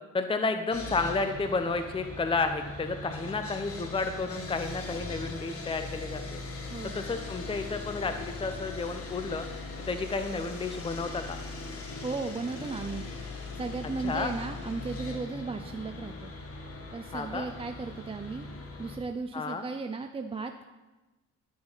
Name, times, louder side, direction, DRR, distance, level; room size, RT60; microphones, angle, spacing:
voice 1, 0.1-6.4 6.8-9.5 9.9-11.4 14.0-14.3 17.1-17.5 19.3-19.7, left 3 dB, 20° left, 8 dB, 0.7 m, -31 dB
Sawing, 0.7-19.0, left 3 dB, 50° left, 1.7 m, -40 dB
voice 2, 6.7-7.0 12.0-13.1 13.4-16.3 16.9-18.5 18.8-20.5, right 4 dB, 20° right, 6 dB, 0.5 m, -35 dB
11.5 x 6.8 x 4.0 m, 1.1 s
cardioid pair, 90°, 30 cm